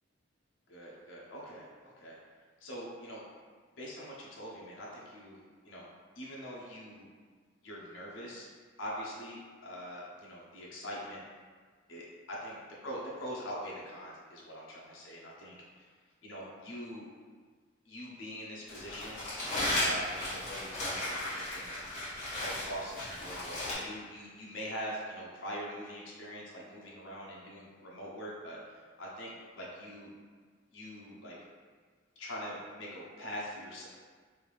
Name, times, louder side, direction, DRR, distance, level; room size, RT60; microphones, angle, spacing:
voice 1, 0.7-2.2 2.6-3.2 3.8-5.9 6.2-7.1 7.6-8.5 8.8-11.2 11.9-12.6 12.8-15.9 16.2-17.1 17.9-19.2 19.8-21.8 22.4-29.3 29.6-30.1 30.7-31.4 32.2-33.9, equal, 80° left, -4 dB, 0.7 m, -43 dB
Crumpling crinkling, 18.7-23.7, left 1 dB, 40° left, 1.4 m, -35 dB
3.3 x 2.6 x 3.3 m, 1.6 s
head